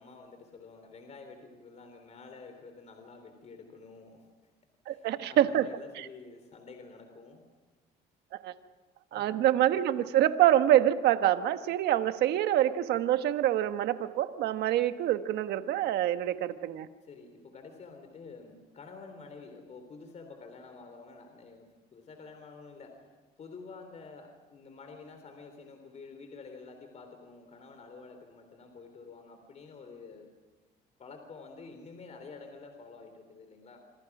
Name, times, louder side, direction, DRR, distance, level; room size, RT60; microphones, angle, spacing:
voice 1, 0.0-4.5 4.9-7.4 9.1-9.4 17.0-30.3 31.0-33.8, left 4 dB, 40° left, 6 dB, 3.5 m, -49 dB
voice 2, 4.9-5.7 8.4-8.5 9.1-16.9, right 12 dB, 75° right, 9 dB, 1.3 m, -26 dB
27.0 x 25.5 x 6.1 m, 1.2 s
cardioid pair, 110°, 17 cm